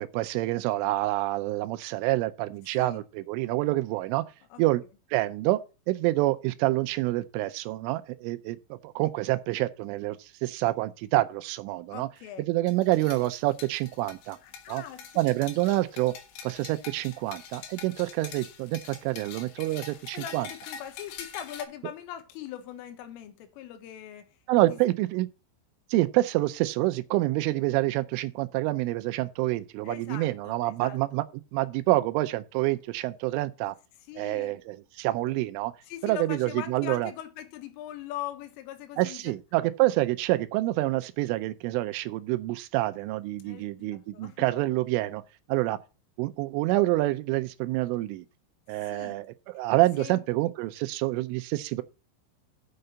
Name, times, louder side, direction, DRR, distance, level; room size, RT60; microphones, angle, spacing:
voice 1, 0.0-4.2 4.6-4.8 5.1-12.1 12.4-14.4 14.7-14.8 15.2-16.1 16.4-20.5 24.5-25.3 25.9-31.2 31.5-33.8 34.2-35.7 36.0-37.1 39.0-45.2 45.5-45.8 46.2-48.3 48.7-51.8, right 18 dB, 85° right, 3.0 m, -27 dB
voice 2, 11.9-12.4 14.4-15.4 20.1-24.3 24.6-24.8 29.8-31.2 34.1-34.6 35.8-39.3 43.4-44.5 48.8-49.2 50.0-50.2, left 11 dB, 85° left, 3.6 m, -41 dB
sound 1, 12.7-21.6, left 7 dB, 70° left, 3.4 m, -45 dB
6.8 x 6.8 x 6.3 m
omnidirectional pair, 5.8 m